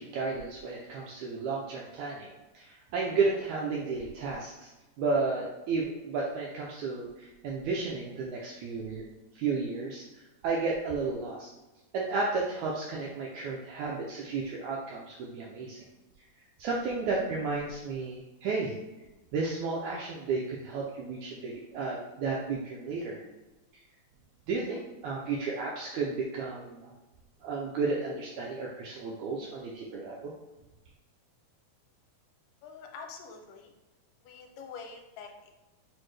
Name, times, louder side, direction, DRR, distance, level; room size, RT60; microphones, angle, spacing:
voice 1, 0.0-4.7 5.0-9.0 9.3-11.5 11.9-15.9 16.6-18.8 19.3-23.2 23.7-23.8 24.5-26.9 27.4-30.3, right 4 dB, 85° right, -2 dB, 1.6 m, -33 dB
voice 2, 32.6-33.7 34.2-35.5, left 5 dB, 80° left, 3 dB, 2.1 m, -45 dB
6.0 x 2.1 x 3.2 m, 1.1 s
omnidirectional pair, 3.8 m